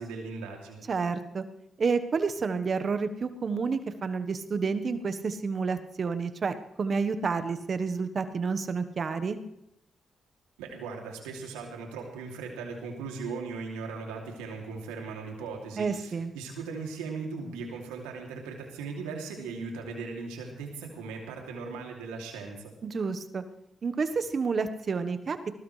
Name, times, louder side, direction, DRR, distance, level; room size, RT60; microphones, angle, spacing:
voice 1, 0.0-0.9 10.6-22.7, right 4 dB, 90° right, 1 dB, 2.9 m, -38 dB
voice 2, 0.9-1.4 1.8-9.4 15.8-16.3 22.8-23.4 23.8-25.5, right 5 dB, 55° right, 10 dB, 1.3 m, -30 dB
20.5 x 20.0 x 3.3 m, 0.82 s
hypercardioid pair, 45°, 0 cm